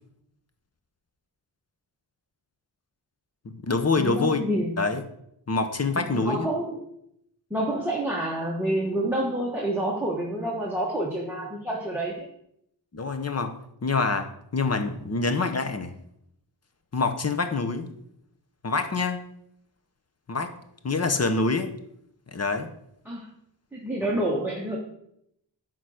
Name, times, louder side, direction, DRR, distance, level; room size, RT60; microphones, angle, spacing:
voice 1, 3.4-4.4 4.8-5.0 5.5-6.5 12.9-13.6 13.8-15.9 16.9-17.9 18.6-19.2 20.3-20.5 20.8-21.7 22.3-22.7, left 3 dB, 35° left, 8 dB, 0.8 m, -26 dB
voice 2, 4.0-4.8 6.1-6.8 7.5-12.3 23.0-23.3 23.7-24.8, right 1 dB, 5° right, -2 dB, 1.2 m, -28 dB
10.0 x 3.9 x 6.3 m, 0.74 s
wide cardioid pair, 140°, 43 cm